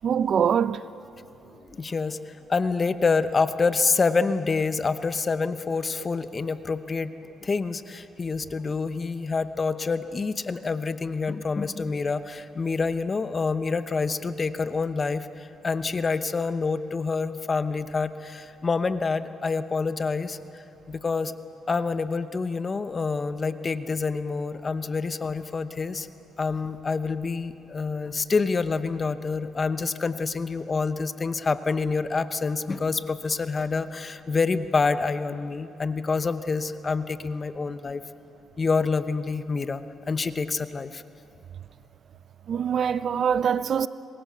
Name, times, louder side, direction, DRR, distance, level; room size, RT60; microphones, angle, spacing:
voice 1, 0.0-0.8 42.5-43.9, right 8 dB, 55° right, 0.6 m, -23 dB
voice 2, 1.6-7.1 7.4-21.3 21.7-26.1 26.4-38.0 38.6-41.0, left 4 dB, 35° left, 0.8 m, -27 dB
26.0 x 21.0 x 6.8 m
cardioid pair, 90°, 0 cm